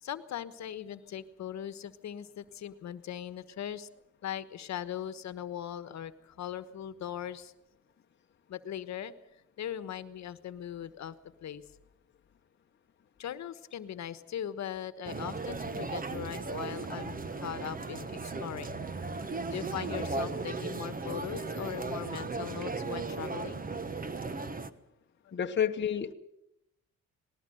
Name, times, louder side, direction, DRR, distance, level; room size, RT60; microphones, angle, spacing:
voice 1, 0.0-3.9 4.2-7.5 8.5-9.1 9.6-11.1 11.4-11.6 13.2-18.8 19.2-23.7 25.2-25.3, left 10 dB, 65° left, 13 dB, 1.3 m, -40 dB
sound 1, 15.0-24.7, right 3 dB, 30° right, 1.3 m, -36 dB
voice 2, 25.3-26.1, left 8 dB, 40° left, 4 dB, 1.1 m, -29 dB
19.5 x 18.0 x 7.9 m, 0.83 s
cardioid pair, 90°, 30 cm